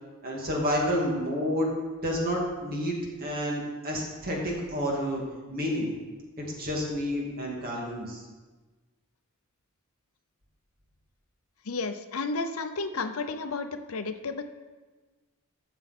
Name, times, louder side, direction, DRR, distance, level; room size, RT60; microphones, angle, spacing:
voice 1, 0.2-1.7 2.0-5.2 5.5-5.9 6.4-8.2, equal, 45° right, -2 dB, 2.4 m, -29 dB
voice 2, 11.7-14.4, left 3 dB, 70° left, 9 dB, 0.7 m, -32 dB
12.5 x 7.3 x 4.3 m, 1.3 s
head